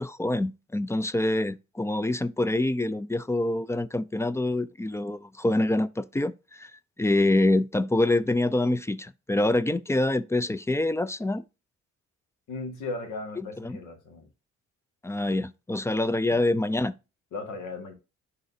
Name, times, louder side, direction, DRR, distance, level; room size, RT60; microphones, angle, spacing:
voice 1, 0.0-6.7 7.0-11.4 13.4-13.8 15.0-16.9, left 2 dB, 10° left, 0.3 m, -26 dB
voice 2, 12.5-14.3 17.3-17.9, left 3 dB, 80° left, 1.8 m, -36 dB
11.0 x 4.1 x 2.6 m
cardioid pair, 90°, 30 cm